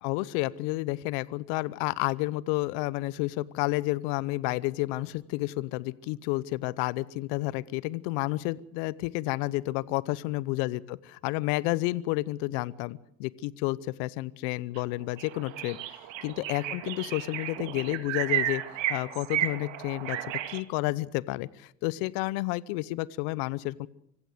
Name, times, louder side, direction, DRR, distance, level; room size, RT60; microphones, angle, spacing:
voice 1, 0.0-11.0 11.2-23.9, left 19 dB, 75° left, 21 dB, 1.0 m, -31 dB
sound 1, 14.8-14.9 15.2-20.6, right 12 dB, 60° right, 2.5 m, -33 dB
25.5 x 15.5 x 7.9 m, 0.69 s
hypercardioid pair, 65°, 50 cm